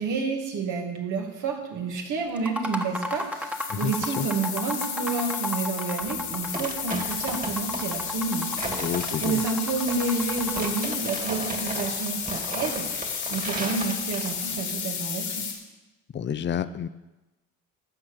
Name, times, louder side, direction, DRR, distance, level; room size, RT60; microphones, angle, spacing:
voice 1, 0.0-8.9 9.2-15.5, right 4 dB, 75° right, 1 dB, 2.4 m, -30 dB
sound 1, 2.4-11.0, left 1 dB, 5° right, 1.3 m, -34 dB
sound 2, 3.1-15.5, left 7 dB, 85° left, 2.8 m, -32 dB
voice 2, 3.7-4.3 8.8-9.4 16.1-16.9, left 8 dB, 40° left, 13 dB, 0.6 m, -29 dB
sound 3, 6.0-14.6, right 2 dB, 25° right, 2.2 m, -36 dB
12.5 x 7.4 x 6.6 m, 1.1 s
cardioid pair, 90°, 30 cm